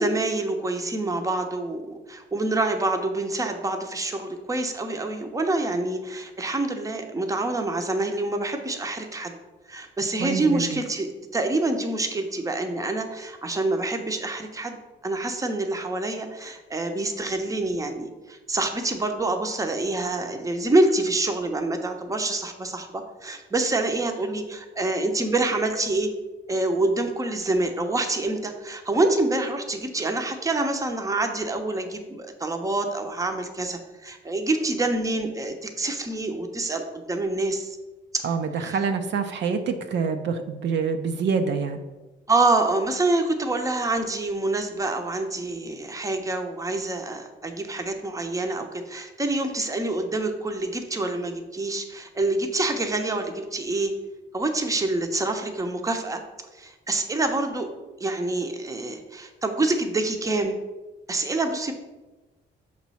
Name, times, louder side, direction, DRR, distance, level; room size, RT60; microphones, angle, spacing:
voice 1, 0.0-9.4 9.7-11.1 11.3-26.1 26.5-37.8 38.1-38.3 38.6-38.7 42.3-53.9 54.3-56.2 56.5-57.7 58.0-60.6 61.1-61.7, right 2 dB, 15° right, 5 dB, 0.8 m, -26 dB
voice 2, 10.2-10.8 38.2-41.8, right 5 dB, 65° right, 6 dB, 0.6 m, -26 dB
5.8 x 3.1 x 5.6 m, 1.1 s
cardioid pair, 90°, 20 cm